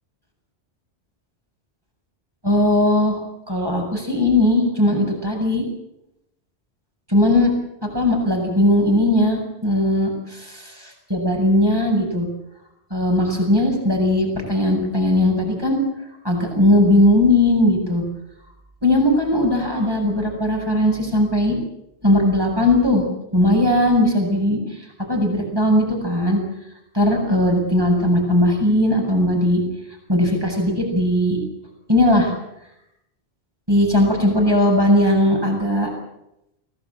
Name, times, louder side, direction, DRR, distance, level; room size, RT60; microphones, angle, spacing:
voice 1, 2.4-3.2 3.5-5.6 7.1-7.5 7.9-12.3 12.9-15.8 16.2-18.0 18.8-21.6 22.0-23.0 23.3-24.6 25.1-26.4 26.9-29.6 30.1-31.4 31.9-32.3 33.7-35.9, left 1 dB, 20° right, 1 dB, 7.3 m, -18 dB
24.5 x 18.0 x 8.8 m, 0.85 s
omnidirectional pair, 1.1 m